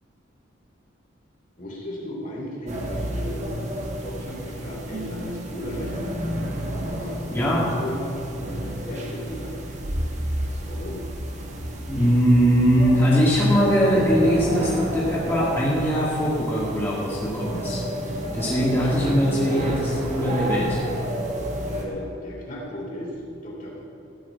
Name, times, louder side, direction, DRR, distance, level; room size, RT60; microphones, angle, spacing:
voice 1, 1.6-3.5 3.9-6.0 6.8-9.8 10.4-11.0 21.7-23.8, left 1 dB, 40° left, -3 dB, 2.9 m, -35 dB
sound 1, 2.7-21.9, right 1 dB, 35° right, 1.4 m, -32 dB
sound 2, 4.9-15.4 15.7-15.8, equal, 65° right, 1.2 m, -35 dB
voice 2, 7.3-7.6 11.9-17.8 18.3-20.8, equal, 10° left, -8 dB, 2.0 m, -21 dB
14.5 x 6.2 x 8.2 m, 2.9 s
head